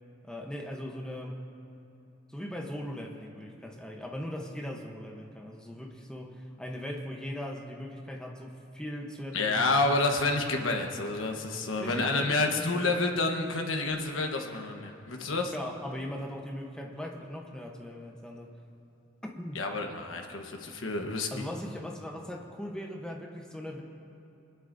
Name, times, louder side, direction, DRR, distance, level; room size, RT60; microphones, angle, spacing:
voice 1, 0.2-1.4 2.3-9.7 11.8-13.0 15.5-18.5 19.2-19.6 21.3-23.8, left 1 dB, 5° left, 0 dB, 1.0 m, -39 dB
voice 2, 9.3-15.5 19.5-21.3, left 3 dB, 70° left, 2 dB, 1.3 m, -29 dB
26.5 x 11.0 x 2.7 m, 2.8 s
head